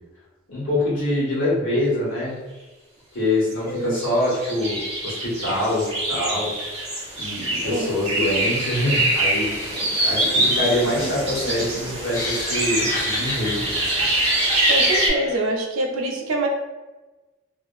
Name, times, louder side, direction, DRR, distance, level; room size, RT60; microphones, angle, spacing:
voice 1, 0.5-2.4 3.1-6.5 7.2-9.5 10.0-14.1, left 1 dB, 65° left, -8 dB, 1.4 m, -24 dB
voice 2, 3.6-4.0 7.6-7.9 14.7-16.5, right 1 dB, 90° right, 1 dB, 0.5 m, -25 dB
sound 1, 3.9-15.1, right 1 dB, 30° right, 0.9 m, -24 dB
Laughter, 9.7-15.5, left 1 dB, 15° left, 0.6 m, -33 dB
2.7 x 2.5 x 2.3 m, 1.2 s
head